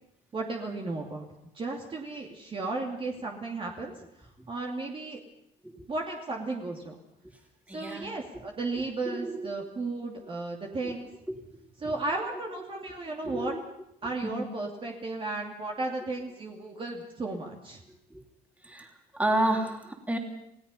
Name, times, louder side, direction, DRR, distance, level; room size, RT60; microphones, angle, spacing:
voice 1, 0.3-1.3 1.5-5.2 5.9-6.9 7.7-11.1 11.8-13.5 14.0-17.8, right 3 dB, 30° right, 0 dB, 2.7 m, -34 dB
voice 2, 7.7-8.1 9.0-9.5 10.8-10.9 11.3-11.4 11.8-11.9 13.2-13.6 14.2-14.3 18.1-18.2 18.6-20.2, right 1 dB, 10° right, 2 dB, 3.4 m, -31 dB
28.0 x 17.5 x 5.6 m, 0.75 s
cardioid pair, 110°, 17 cm